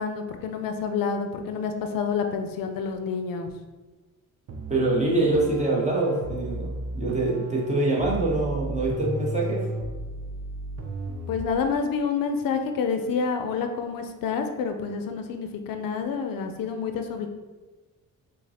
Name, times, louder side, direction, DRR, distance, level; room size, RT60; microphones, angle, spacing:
voice 1, 0.0-3.5 11.3-17.3, left 5 dB, 75° left, 6 dB, 0.5 m, -28 dB
sound 1, 4.5-11.6, right 2 dB, 45° right, 0.5 m, -34 dB
voice 2, 4.7-9.7, right 2 dB, 20° right, -4 dB, 0.8 m, -25 dB
5.0 x 2.1 x 2.8 m, 1.2 s
cardioid pair, 125°, 34 cm